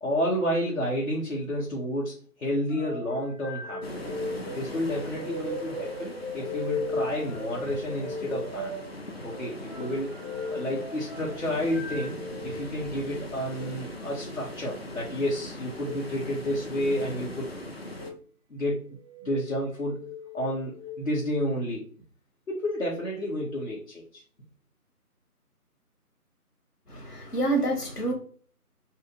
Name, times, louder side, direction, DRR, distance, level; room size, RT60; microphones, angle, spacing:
voice 1, 0.0-3.9 4.5-8.7 9.2-10.1 10.5-12.2 12.4-17.5 18.5-18.9 19.2-20.0 20.3-21.8 22.5-24.2, equal, 60° left, -3 dB, 1.0 m, -30 dB
sound 1, 2.7-12.6 13.4-13.7 15.7-16.0 16.8-17.3 17.9-18.2 18.9-19.4 19.9-21.0, left 2 dB, 10° left, 1.0 m, -37 dB
sound 2, 3.8-18.1, left 1 dB, 40° left, 0.6 m, -40 dB
voice 2, 26.9-28.1, right 2 dB, 80° left, 1 dB, 1.6 m, -27 dB
2.8 x 2.4 x 3.7 m, 0.44 s
figure-of-eight pair, 160°, 46 cm